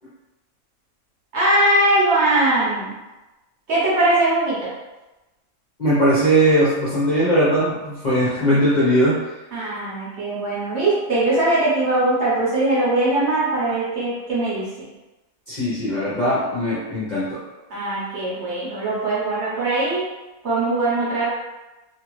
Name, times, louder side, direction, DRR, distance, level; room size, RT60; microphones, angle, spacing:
voice 1, 1.3-2.9 3.7-4.6 9.5-14.7 17.7-20.0 20.4-21.3, right 2 dB, 55° right, -7 dB, 1.1 m, -20 dB
voice 2, 5.8-9.1 15.5-17.4, equal, 40° left, -10 dB, 0.7 m, -19 dB
2.7 x 2.4 x 3.0 m, 1.1 s
omnidirectional pair, 1.5 m